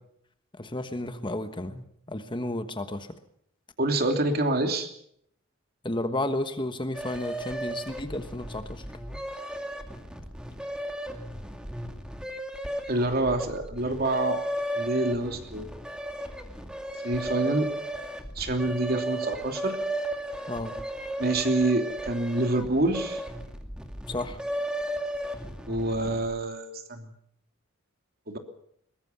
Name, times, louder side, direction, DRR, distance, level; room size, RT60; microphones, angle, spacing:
voice 1, 0.5-3.2 5.8-8.8 20.5-20.8 24.1-24.4, left 1 dB, 25° left, 9 dB, 1.3 m, -32 dB
voice 2, 3.8-4.9 12.9-14.4 14.8-15.7 17.0-17.7 18.4-19.8 21.2-23.2 25.7-27.1 28.3-28.4, right 2 dB, 45° right, 5 dB, 3.0 m, -27 dB
sound 1, 6.9-26.4, right 1 dB, 5° right, 2.4 m, -35 dB
22.5 x 20.5 x 7.0 m, 0.70 s
head